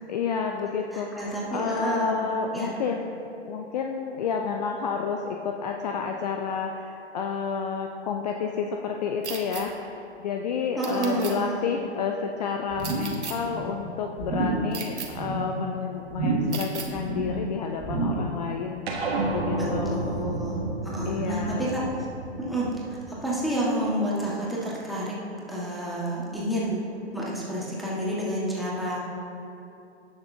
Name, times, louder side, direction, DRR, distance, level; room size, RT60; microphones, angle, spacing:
voice 1, 0.1-20.2 21.1-21.7, left 5 dB, 35° left, 3 dB, 0.6 m, -30 dB
voice 2, 0.9-2.1 2.5-2.7 10.8-11.7 19.5-21.8 22.4-25.1 25.5-26.8 27.1-29.0, right 1 dB, ahead, -6 dB, 1.6 m, -29 dB
sound 1, 9.2-9.6 10.8-11.3 12.8-13.3 14.7-15.1 16.5-16.9, right 5 dB, 75° right, 1.6 m, -35 dB
sound 2, 12.7-13.2 13.5-13.8 14.2-14.7 15.0-15.5 16.1-16.6 16.9-17.4 17.8-18.3 18.7-18.8, right 2 dB, 20° right, 2.2 m, -29 dB
sound 3, 18.9-23.6, right 2 dB, 60° right, 1.7 m, -31 dB
17.5 x 6.6 x 2.8 m, 2.9 s
figure-of-eight pair, 125°, 34 cm